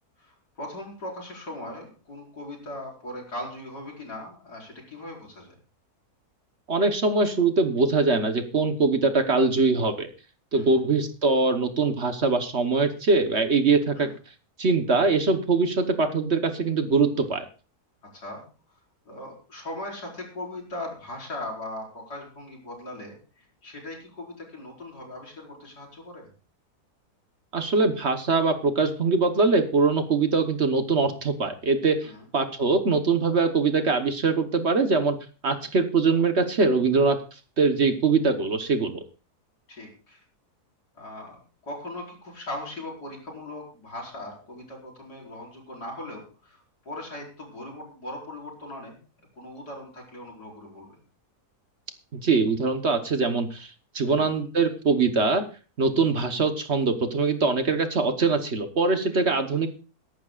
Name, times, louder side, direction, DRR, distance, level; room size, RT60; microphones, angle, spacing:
voice 1, 0.2-5.6 10.5-10.8 14.0-14.1 18.1-18.4 19.1-26.3 32.0-32.2 39.7-40.2 41.0-46.6 46.9-49.0 49.4-50.9 54.1-54.3 59.1-59.3, left 1 dB, 90° left, -1 dB, 5.6 m, -39 dB
voice 2, 6.7-10.1 10.5-14.1 14.6-17.5 27.5-35.2 35.4-37.2 37.6-39.0 52.1-55.4 55.8-59.7, right 4 dB, 45° right, 8 dB, 1.3 m, -23 dB
22.5 x 11.5 x 2.4 m, 0.34 s
omnidirectional pair, 1.7 m